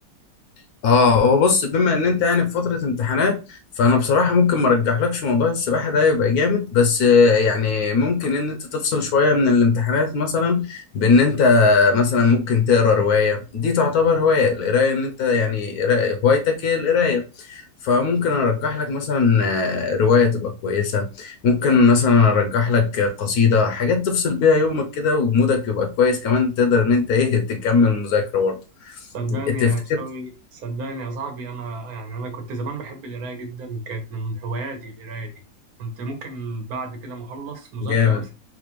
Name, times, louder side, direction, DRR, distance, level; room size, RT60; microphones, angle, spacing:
voice 1, 0.8-29.1 29.5-29.7 37.8-38.2, left 5 dB, 70° left, 1.1 m, -19 dB
voice 2, 29.1-35.3 35.8-38.3, right 3 dB, 60° right, 1.4 m, -32 dB
4.2 x 2.5 x 2.9 m
omnidirectional pair, 1.8 m